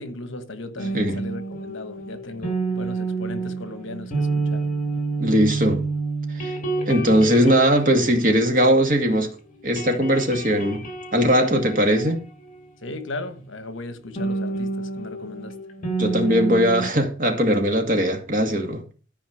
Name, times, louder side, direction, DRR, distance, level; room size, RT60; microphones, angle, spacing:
voice 1, 0.0-4.7 12.8-15.6, left 2 dB, 65° left, 1.3 m, -36 dB
sound 1, 0.8-9.3 9.5-13.0 14.2-16.8, right 3 dB, 40° left, 2.6 m, -29 dB
voice 2, 5.2-5.8 6.3-9.3 9.6-10.8 11.1-12.2 16.0-18.8, equal, 40° right, 2.1 m, -20 dB
13.0 x 5.0 x 6.2 m
head